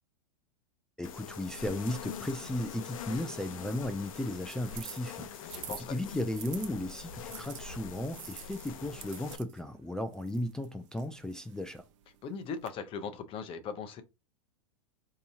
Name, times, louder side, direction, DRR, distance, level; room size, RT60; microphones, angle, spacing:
sound 1, 1.0-9.4, left 7 dB, 80° left, 0.6 m, -44 dB
voice 1, 1.0-5.6 5.9-11.8, left 1 dB, 5° left, 0.3 m, -35 dB
sound 2, 2.5-6.7 7.3-12.7, right 11 dB, 65° right, 0.7 m, -50 dB
voice 2, 5.4-6.0 12.2-14.0, left 6 dB, 30° left, 0.7 m, -39 dB
4.4 x 2.8 x 2.7 m
hypercardioid pair, 125°, 17 cm